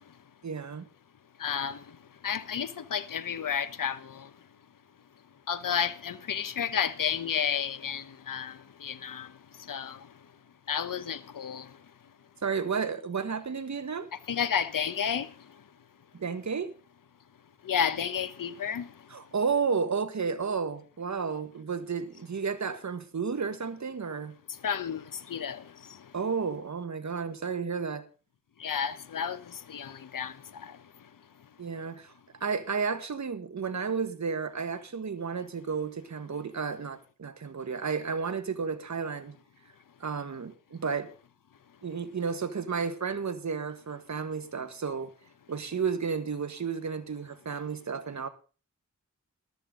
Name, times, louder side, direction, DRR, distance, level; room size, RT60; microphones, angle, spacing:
voice 1, 0.4-0.9 12.4-14.1 16.1-16.7 19.1-24.3 26.1-28.0 31.6-32.1 32.4-39.3 40.0-41.1 41.8-45.1 45.5-48.3, right 5 dB, 60° right, 1.7 m, -32 dB
voice 2, 1.4-1.8 2.2-4.3 5.5-9.3 9.7-10.0 10.7-11.7 14.3-15.3 17.6-18.9 24.6-25.6 28.6-30.7, left 7 dB, 85° left, 1.1 m, -31 dB
14.0 x 13.0 x 3.9 m
wide cardioid pair, 80°, 32 cm